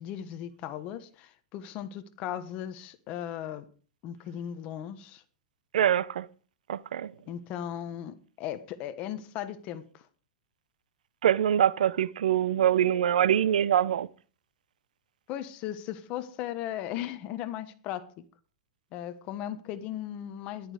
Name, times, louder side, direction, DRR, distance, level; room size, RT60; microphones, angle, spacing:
voice 1, 0.0-3.6 4.0-5.2 7.3-10.0 15.3-18.2 18.9-20.7, left 11 dB, 30° left, 1.2 m, -37 dB
voice 2, 5.7-6.3 6.7-7.1 11.2-14.1, right 10 dB, 85° right, 0.8 m, -24 dB
14.0 x 11.5 x 5.0 m
supercardioid pair, 165°, 4 cm